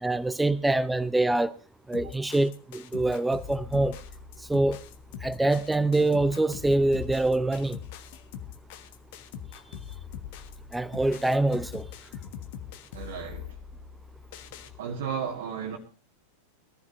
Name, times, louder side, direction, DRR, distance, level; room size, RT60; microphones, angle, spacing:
voice 1, 0.0-1.5 1.9-4.0 4.5-4.8 5.2-7.8 10.7-11.9, right 2 dB, 5° right, 0.6 m, -25 dB
sound 1, 1.9-14.7, left 8 dB, 50° left, 1.4 m, -42 dB
voice 2, 12.9-13.6 14.8-15.8, right 7 dB, 55° right, 1.7 m, -34 dB
22.5 x 14.5 x 2.6 m
figure-of-eight pair, 90°, 0 cm